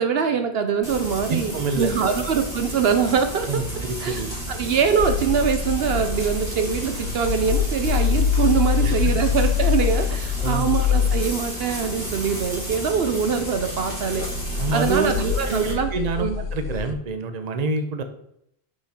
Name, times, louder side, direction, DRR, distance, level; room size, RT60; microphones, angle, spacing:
voice 1, 0.0-3.6 4.0-14.2 14.7-16.4, right 6 dB, 70° right, 8 dB, 0.9 m, -23 dB
Frying (food), 0.8-15.7, right 1 dB, 25° right, 2.8 m, -32 dB
voice 2, 1.3-1.9 3.5-4.3 8.8-8.9 10.4-10.7 14.6-15.1 15.5-18.0, right 3 dB, 45° right, 8 dB, 0.8 m, -27 dB
sound 1, 5.0-11.6 12.0-12.5 13.1-13.2 13.6-16.9, left 8 dB, 80° left, 0.9 m, -25 dB
6.1 x 5.9 x 4.2 m, 0.75 s
omnidirectional pair, 1.1 m